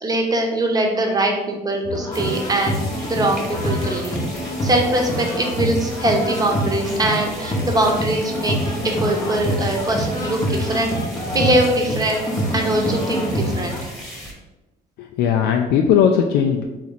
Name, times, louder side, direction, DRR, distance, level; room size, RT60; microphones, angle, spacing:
voice 1, 0.0-2.8 3.1-4.2 4.6-8.6 8.8-10.9 11.3-12.2 12.5-13.8, right 1 dB, 20° right, 2 dB, 0.9 m, -22 dB
sound 1, 1.8-13.8, equal, 25° left, 0.8 m, -26 dB
sound 2, 2.1-14.3, equal, ahead, 1.2 m, -38 dB
voice 2, 15.0-16.6, left 8 dB, 80° left, 3 dB, 0.4 m, -18 dB
4.1 x 3.1 x 3.9 m, 1.1 s
cardioid pair, 110°, 17 cm